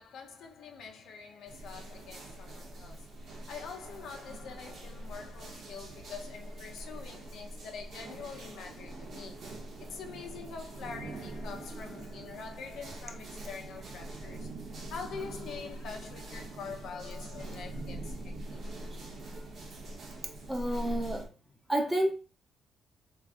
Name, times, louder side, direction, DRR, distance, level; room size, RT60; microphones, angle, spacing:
voice 1, 0.0-14.5 14.9-18.6, left 6 dB, 75° left, 0.7 m, -45 dB
sound 1, 1.5-21.3, right 1 dB, 60° right, 1.1 m, -43 dB
voice 2, 20.5-21.3 21.7-22.1, right 1 dB, 10° right, 0.9 m, -29 dB
3.6 x 3.2 x 2.6 m
cardioid pair, 90°, 0 cm